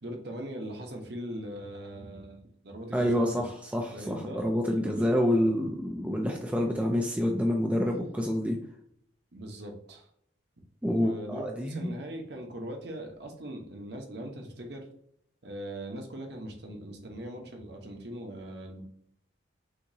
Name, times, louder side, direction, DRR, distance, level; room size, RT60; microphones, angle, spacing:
voice 1, 0.0-3.4 3.9-4.4 4.8-5.2 9.3-10.1 10.9-14.9 15.4-18.8, right 1 dB, 55° right, 2 dB, 1.0 m, -40 dB
voice 2, 2.9-8.6 10.8-11.9, equal, 5° right, 1 dB, 0.4 m, -28 dB
6.3 x 2.9 x 2.7 m, 0.68 s
head